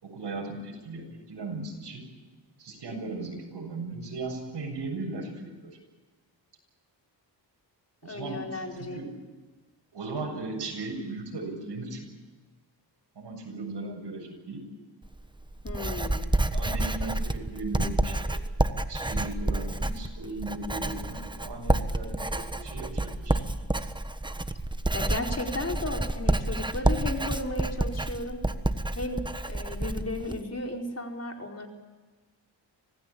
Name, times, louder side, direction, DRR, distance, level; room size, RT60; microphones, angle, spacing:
voice 1, 0.0-2.0 2.6-5.8 8.0-9.0 9.9-12.1 13.2-14.6 16.5-18.3 18.9-23.4, right 2 dB, 70° right, 2 dB, 7.7 m, -37 dB
voice 2, 8.0-9.0 15.6-16.3 24.9-28.4 28.9-31.7, left 2 dB, 35° left, 2 dB, 4.6 m, -34 dB
Writing, 15.0-30.4, right 1 dB, 10° right, 1.3 m, -29 dB
26.0 x 18.0 x 8.6 m, 1.3 s
cardioid pair, 80°, 43 cm